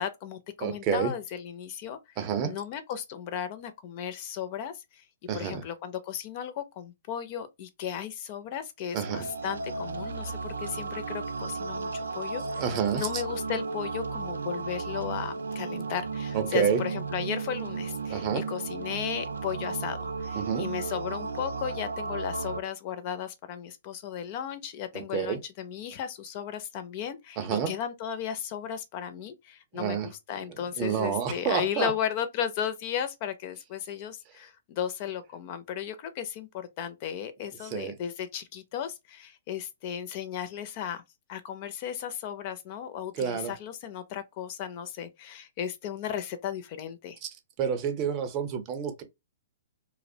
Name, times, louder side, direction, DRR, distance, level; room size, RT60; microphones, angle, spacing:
voice 1, 0.0-2.0 2.4-5.0 5.3-12.4 12.9-41.0 41.3-47.2, left 9 dB, 40° left, 0.4 m, -35 dB
voice 2, 0.6-1.1 2.2-2.6 5.3-5.6 8.9-9.3 12.6-13.2 16.3-16.8 18.1-18.5 20.3-20.7 24.9-25.4 27.4-27.7 29.7-30.1 30.8-31.9 37.6-37.9 43.1-43.5 47.2-47.3 47.6-49.0, right 7 dB, 35° right, 0.6 m, -29 dB
sound 1, 9.0-22.6, right 4 dB, 90° right, 0.3 m, -34 dB
2.4 x 2.0 x 2.6 m
hypercardioid pair, 140°, 0 cm